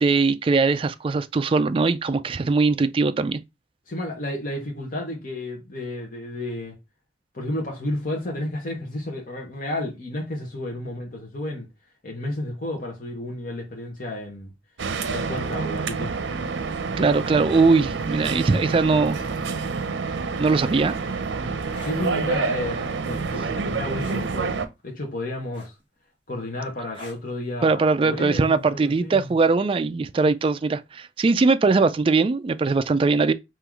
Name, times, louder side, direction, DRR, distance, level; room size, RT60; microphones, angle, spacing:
voice 1, 0.0-3.4 17.0-19.2 20.4-20.9 27.6-33.3, right 4 dB, 30° right, 0.3 m, -21 dB
voice 2, 3.9-6.7 7.3-11.7 12.0-14.5 15.1-16.3 21.8-25.7 26.3-29.3, left 1 dB, 50° left, 1.1 m, -32 dB
sound 1, 14.8-24.7, right 4 dB, 90° right, 0.6 m, -28 dB
sound 2, 21.7-22.0 24.0-24.3 25.5-26.0 26.9-27.3 28.7-28.9, left 3 dB, 30° left, 1.4 m, -42 dB
3.7 x 2.9 x 4.6 m
head